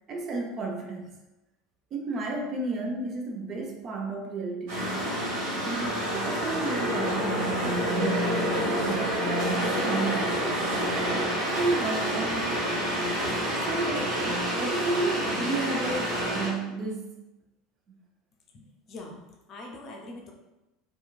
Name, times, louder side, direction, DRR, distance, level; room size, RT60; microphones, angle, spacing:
voice 1, 0.1-1.1 1.9-5.0 5.6-10.4 11.5-12.6 13.6-17.2, right 3 dB, 35° right, 1 dB, 0.4 m, -32 dB
sound 1, 4.7-16.5, equal, 55° right, 1.1 m, -28 dB
voice 2, 18.5-19.1 19.5-20.3, left 2 dB, 40° left, 0 dB, 0.5 m, -43 dB
2.9 x 2.2 x 2.3 m, 1.0 s
figure-of-eight pair, 70°, 0 cm